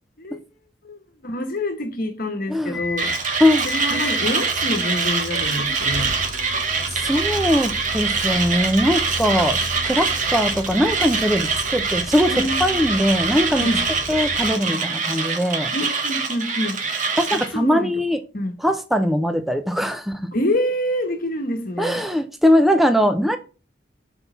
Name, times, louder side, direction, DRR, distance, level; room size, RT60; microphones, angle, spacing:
voice 1, 0.8-6.1 12.3-12.9 13.6-13.9 14.6-14.9 15.7-16.8 17.3-18.0 18.3-18.6 20.3-22.1, left 1 dB, 55° left, 1.3 m, -27 dB
sound 1, 2.7-14.5, left 2 dB, 85° left, 1.1 m, -34 dB
Mechanisms, 3.0-17.5, right 4 dB, 45° right, 1.8 m, -24 dB
voice 2, 3.4-4.0 6.9-9.6 9.8-13.7 14.1-15.7 17.2-18.2 18.6-20.2 21.8-23.4, equal, ahead, 0.6 m, -21 dB
6.3 x 5.5 x 6.9 m
head